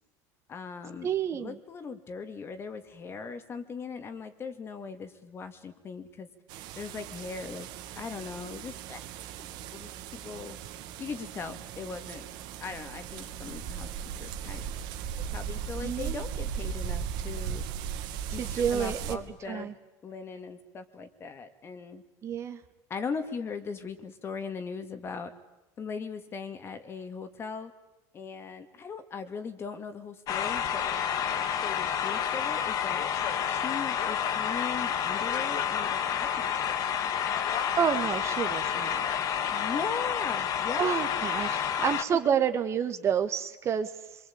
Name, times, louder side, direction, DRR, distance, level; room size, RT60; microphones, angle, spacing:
voice 1, 0.5-6.3 6.8-7.7 8.0-9.0 9.4-10.6 11.0-12.3 12.6-13.9 14.2-14.7 15.3-17.6 18.3-19.7 20.0-22.0 22.9-25.3 25.8-27.7 28.1-30.9 31.4-33.1 33.5-36.6 39.5-40.9, left 5 dB, 30° left, 10 dB, 2.5 m, -39 dB
voice 2, 1.0-1.6 15.8-16.2 18.4-19.2 19.5-19.7 22.2-22.6 37.8-39.0 40.8-43.9, right 8 dB, 35° right, 9 dB, 1.8 m, -29 dB
sound 1, 6.5-19.2, right 8 dB, 60° right, 2.3 m, -37 dB
sound 2, 30.3-42.0, left 8 dB, 50° left, 1.9 m, -29 dB
26.5 x 23.5 x 8.8 m, 1.0 s
supercardioid pair, 125°, 8 cm